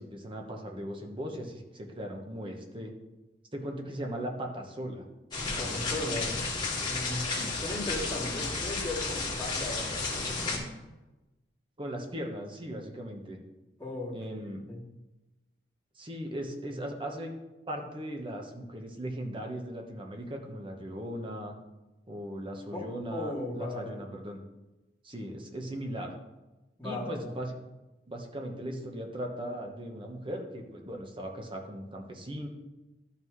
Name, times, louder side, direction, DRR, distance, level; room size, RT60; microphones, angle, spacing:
voice 1, 0.0-2.9 3.5-5.0 6.1-6.3 7.3-7.6 11.8-13.4 14.1-14.6 15.9-17.3 17.7-21.6 22.1-24.4 25.0-26.1 26.8-27.6 28.1-32.5, equal, 30° right, 2 dB, 1.1 m, -38 dB
sound 1, 5.3-10.6, left 3 dB, 25° left, 2.1 m, -32 dB
voice 2, 5.6-6.4 6.9-10.7 13.8-14.2 14.7-14.8 23.1-24.1 26.8-27.4, left 2 dB, 10° left, -9 dB, 2.6 m, -37 dB
12.5 x 5.7 x 3.2 m, 1.0 s
head